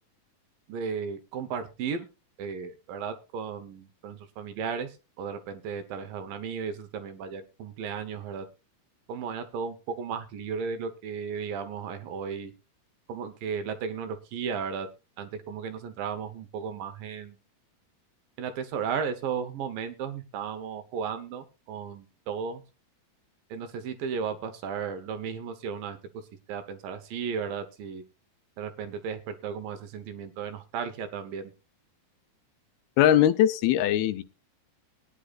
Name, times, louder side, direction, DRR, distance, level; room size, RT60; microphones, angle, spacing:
voice 1, 0.7-2.1 2.4-8.5 9.1-12.5 13.1-14.9 15.2-17.4 18.4-22.6 23.5-26.0 26.5-28.0 28.6-31.5, right 6 dB, 70° right, 9 dB, 2.6 m, -35 dB
voice 2, 33.0-34.2, left 11 dB, 80° left, 12 dB, 2.6 m, -21 dB
20.0 x 10.0 x 2.4 m, 0.29 s
omnidirectional pair, 4.4 m